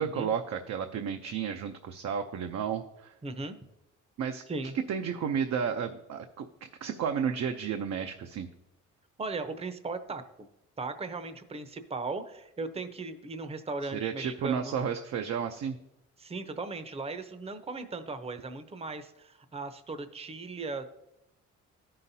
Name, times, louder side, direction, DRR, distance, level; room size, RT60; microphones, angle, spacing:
voice 1, 0.0-3.1 4.2-8.5 13.9-15.8, right 7 dB, 60° right, 5 dB, 0.6 m, -32 dB
voice 2, 3.2-3.6 4.5-4.8 9.2-10.2 10.8-14.7 16.2-20.8, right 3 dB, 20° right, 10 dB, 0.7 m, -37 dB
13.5 x 5.7 x 2.7 m, 0.87 s
cardioid pair, 90°, 30 cm